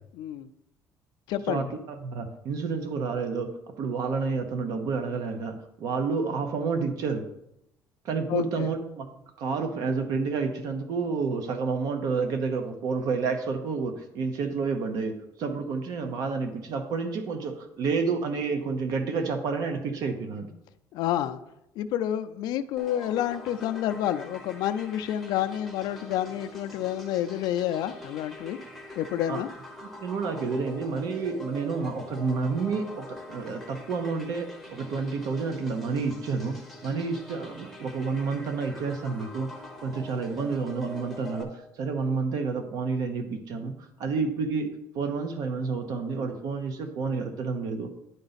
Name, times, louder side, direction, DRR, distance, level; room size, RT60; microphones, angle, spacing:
voice 1, 0.1-0.5 1.3-1.7 8.3-8.7 20.9-21.4 21.8-28.6 29.0-29.5, left 11 dB, 70° left, 9 dB, 0.4 m, -29 dB
voice 2, 2.0-3.5 3.8-7.2 8.0-9.1 9.4-15.1 15.4-20.5 29.3-29.4 30.0-36.6 36.8-39.5 39.8-41.5 41.8-43.7 44.0-44.7 44.9-47.9, right 4 dB, 55° right, 6 dB, 0.8 m, -29 dB
sound 1, 22.8-41.4, left 1 dB, ahead, 0.8 m, -44 dB
10.5 x 3.9 x 4.1 m, 0.82 s
cardioid pair, 170°, 7 cm